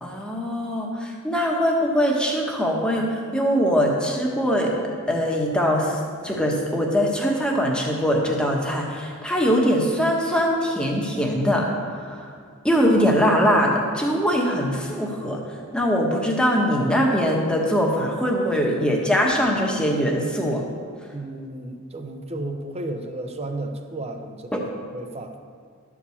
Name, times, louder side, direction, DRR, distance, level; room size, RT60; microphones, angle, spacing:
voice 1, 0.0-4.7 5.1-12.3 12.6-20.6 24.5-24.6, equal, 5° left, -1 dB, 1.3 m, -22 dB
voice 2, 21.1-25.3, right 2 dB, 30° right, 5 dB, 0.8 m, -33 dB
12.0 x 4.8 x 7.0 m, 2.1 s
head